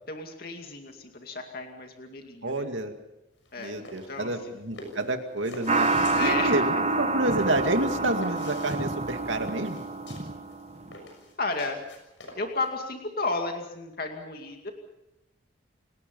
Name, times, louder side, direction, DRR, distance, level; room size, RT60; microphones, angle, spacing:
voice 1, 0.1-2.5 3.5-3.8 4.1-4.6 6.1-6.5 7.9-8.1 11.4-11.8 12.4-14.7, left 3 dB, 50° left, 3 dB, 2.4 m, -33 dB
voice 2, 2.4-2.9 3.6-9.8, right 1 dB, 80° right, 5 dB, 2.3 m, -29 dB
sound 1, 3.4-12.7, left 2 dB, 70° left, 6.5 m, -46 dB
sound 2, 5.7-10.9, right 3 dB, 35° right, 1.3 m, -27 dB
29.5 x 19.0 x 5.6 m, 0.90 s
head